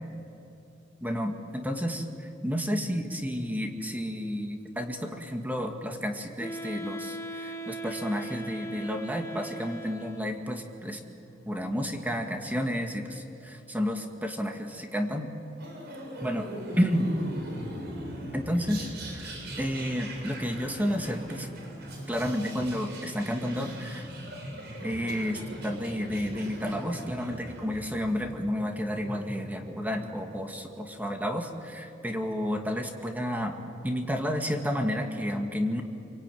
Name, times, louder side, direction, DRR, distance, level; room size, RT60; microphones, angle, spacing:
voice 1, 1.0-11.0 11.5-15.3 16.2-16.5 16.8-17.1 18.3-21.5 22.1-24.1 24.8-33.6 33.8-35.8, equal, 10° right, 3 dB, 2.0 m, -31 dB
Wind instrument woodwind instrument, 6.4-10.5, right 1 dB, 15° left, 1.4 m, -39 dB
sound 1, 15.6-28.3, equal, 60° right, 7.1 m, -40 dB
26.5 x 23.5 x 9.3 m, 2.7 s
head